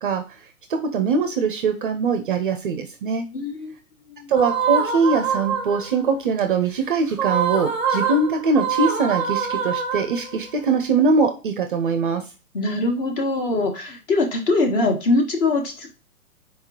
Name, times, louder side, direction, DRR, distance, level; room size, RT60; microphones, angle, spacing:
voice 1, 0.7-3.2 4.3-12.2, right 4 dB, 35° right, 7 dB, 0.4 m, -22 dB
voice 2, 3.3-3.7 4.1-4.3 12.5-15.9, left 2 dB, 35° left, 3 dB, 1.4 m, -22 dB
sound 1, 4.4-6.0 7.1-10.5, right 6 dB, 5° right, 0.7 m, -25 dB
4.4 x 3.6 x 2.8 m, 0.32 s
hypercardioid pair, 130°, 45 cm